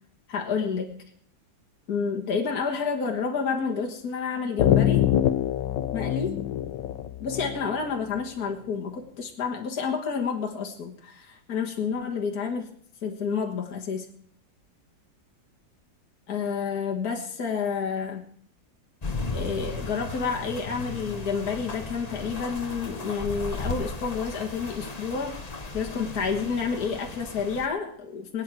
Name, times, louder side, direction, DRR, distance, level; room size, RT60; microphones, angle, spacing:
voice 1, 0.3-0.9 1.9-5.0 5.9-6.4 7.2-12.7 13.0-14.1 16.3-18.3 19.3-25.4 25.7-28.4, left 5 dB, 55° left, 1 dB, 2.0 m, -29 dB
sound 1, 4.6-8.2, left 11 dB, 75° left, 1.5 m, -24 dB
sound 2, 19.0-27.7, left 3 dB, 25° left, 1.2 m, -36 dB
23.5 x 9.3 x 4.7 m, 0.63 s
omnidirectional pair, 2.0 m